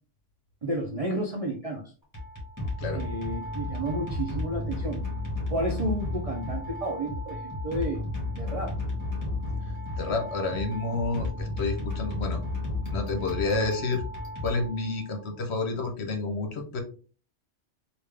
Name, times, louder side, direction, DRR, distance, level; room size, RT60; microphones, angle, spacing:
voice 1, 0.6-1.8 2.9-5.0 5.5-8.0 8.4-8.8, right 1 dB, 45° right, -1 dB, 0.5 m, -31 dB
sound 1, 2.0-15.2, left 2 dB, 15° left, 1.3 m, -33 dB
voice 2, 10.0-12.4 12.8-14.0 14.4-16.8, left 3 dB, 60° left, 4 dB, 1.0 m, -29 dB
3.5 x 2.5 x 3.2 m, 0.38 s
omnidirectional pair, 1.3 m